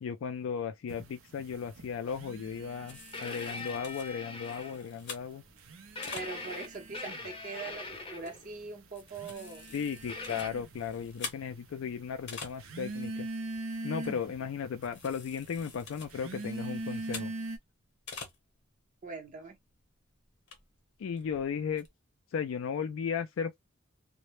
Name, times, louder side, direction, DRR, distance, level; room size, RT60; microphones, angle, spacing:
voice 1, 0.0-5.4 9.7-13.3 13.8-17.3 21.0-21.9 22.3-23.6, left 6 dB, 70° left, 0.3 m, -36 dB
sound 1, 0.9-4.0 4.2-5.0 5.5-17.6, right 2 dB, 80° right, 0.6 m, -42 dB
sound 2, 2.9-6.7 7.3-7.4 7.7-7.8 8.2-8.3 8.7-12.9 13.2-13.3 13.6-13.7 14.0-14.4 14.8-17.6 17.8-18.4 18.8-18.9 19.3-19.4 19.7-19.8 20.3-21.9, left 5 dB, 55° left, 0.8 m, -47 dB
sound 3, 3.1-5.1 6.0-8.6 10.1-10.5, left 3 dB, 25° left, 0.6 m, -42 dB
voice 2, 6.1-9.7 19.0-19.6, right 4 dB, 40° right, 0.8 m, -42 dB
2.1 x 2.0 x 2.9 m
head